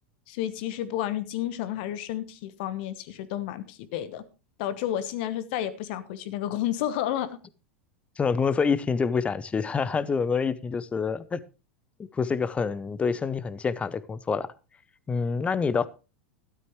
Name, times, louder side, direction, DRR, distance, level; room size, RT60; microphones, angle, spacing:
voice 1, 0.3-4.2 4.6-7.3, left 12 dB, 55° left, 14 dB, 1.2 m, -31 dB
voice 2, 8.2-11.4 12.1-14.5 15.1-15.9, left 5 dB, 20° left, 17 dB, 0.8 m, -27 dB
12.5 x 12.5 x 3.1 m, 0.32 s
figure-of-eight pair, 90°, 7 cm